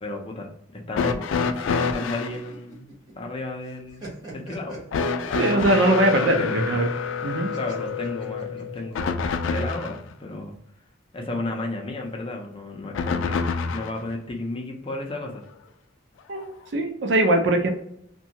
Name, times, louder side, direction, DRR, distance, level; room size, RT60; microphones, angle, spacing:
voice 1, 0.0-2.9 3.2-4.8 6.2-6.6 7.6-10.6 11.1-15.4, left 2 dB, 30° left, 1 dB, 0.5 m, -33 dB
sound 1, 0.9-2.4 4.9-10.0 12.9-14.0 15.2-15.3 16.4-16.5, left 5 dB, 90° left, 0.3 m, -27 dB
sound 2, 1.6-3.3 3.7-5.9 7.5-9.0, right 2 dB, 25° right, 1.1 m, -42 dB
voice 2, 5.3-6.9 7.2-7.5 16.3-17.7, right 1 dB, 65° right, 4 dB, 0.6 m, -21 dB
2.7 x 2.2 x 2.8 m, 0.73 s
head